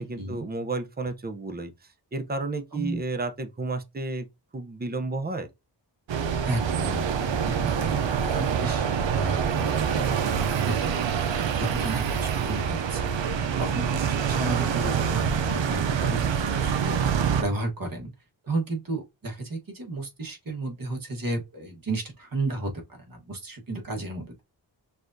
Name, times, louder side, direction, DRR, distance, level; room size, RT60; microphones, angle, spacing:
voice 1, 0.0-1.7 2.1-4.3 4.5-5.5 9.7-9.8, right 3 dB, 20° right, 0.6 m, -32 dB
sound 1, 6.1-17.4, right 7 dB, 90° right, 0.6 m, -26 dB
voice 2, 6.4-11.0 11.6-16.9 17.4-18.1 18.4-24.4, right 2 dB, 50° right, 1.4 m, -33 dB
6.2 x 2.4 x 2.6 m
wide cardioid pair, 80°, 43 cm